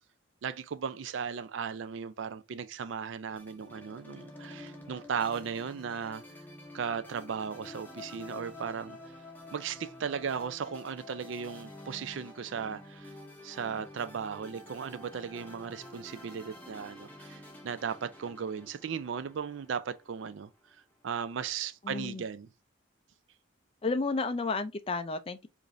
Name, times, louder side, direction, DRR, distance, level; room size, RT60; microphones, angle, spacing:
voice 1, 0.4-6.2 6.7-9.0 9.5-13.1 13.4-22.5, right 6 dB, 65° right, 0.4 m, -36 dB
sound 1, 3.4-20.7, left 1 dB, 10° left, 0.8 m, -49 dB
voice 2, 21.8-22.2 23.8-25.5, left 3 dB, 25° left, 0.4 m, -32 dB
4.9 x 2.6 x 2.6 m
head